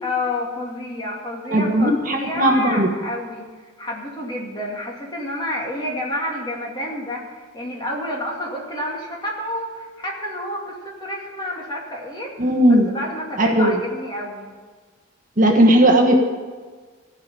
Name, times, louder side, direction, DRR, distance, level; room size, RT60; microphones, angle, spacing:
voice 1, 0.0-3.5 3.8-14.5, left 1 dB, 20° left, -2 dB, 2.4 m, -29 dB
voice 2, 1.5-2.9 12.4-12.9 13.4-13.7 15.4-16.1, right 1 dB, 40° right, 2 dB, 1.3 m, -16 dB
15.0 x 5.8 x 9.1 m, 1.5 s
head